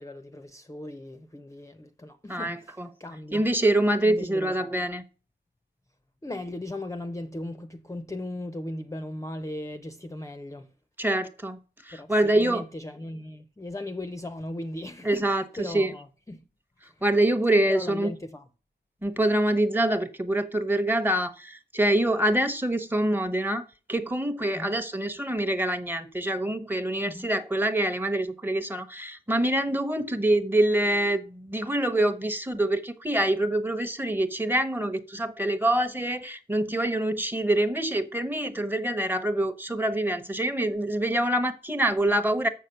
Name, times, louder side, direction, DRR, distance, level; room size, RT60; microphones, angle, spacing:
voice 1, 0.0-3.4 4.0-4.7 6.2-10.7 11.9-16.5 16.8-17.0 17.7-18.5 24.5-24.8 27.0-27.3, left 1 dB, 15° left, 0.6 m, -38 dB
voice 2, 2.3-2.9 3.3-5.0 11.0-11.6 11.8-12.6 15.0-15.9 17.0-18.1 19.0-42.5, right 1 dB, 10° right, 0.9 m, -25 dB
7.0 x 6.5 x 5.7 m
wide cardioid pair, 95°, 19 cm